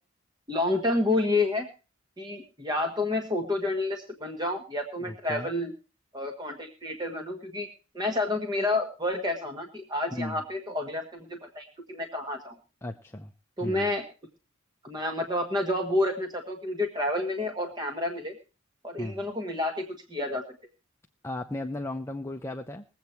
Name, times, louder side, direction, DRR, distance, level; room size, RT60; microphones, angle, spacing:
voice 1, 0.5-1.7 2.2-5.7 6.1-7.7 7.9-12.5 13.6-14.0 14.8-18.3 18.8-20.4, left 2 dB, 20° right, 4 dB, 1.5 m, -29 dB
voice 2, 5.0-5.5 10.1-10.4 12.8-13.3 13.6-13.9 19.0-19.2 21.2-22.8, left 1 dB, 15° left, 3 dB, 0.7 m, -35 dB
20.5 x 8.3 x 4.5 m, 0.33 s
head